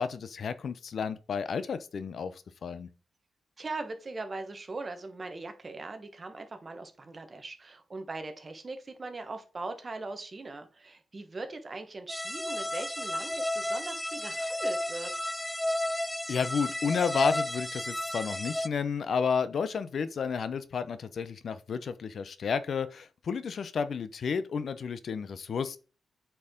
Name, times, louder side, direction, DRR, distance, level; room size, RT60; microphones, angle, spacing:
voice 1, 0.0-2.9 16.3-25.8, left 6 dB, 60° left, 0.6 m, -31 dB
voice 2, 3.6-15.1, right 3 dB, 30° right, 1.2 m, -40 dB
sound 1, 12.1-18.7, left 1 dB, 5° left, 0.3 m, -32 dB
8.5 x 4.7 x 3.8 m
wide cardioid pair, 120°, 0 cm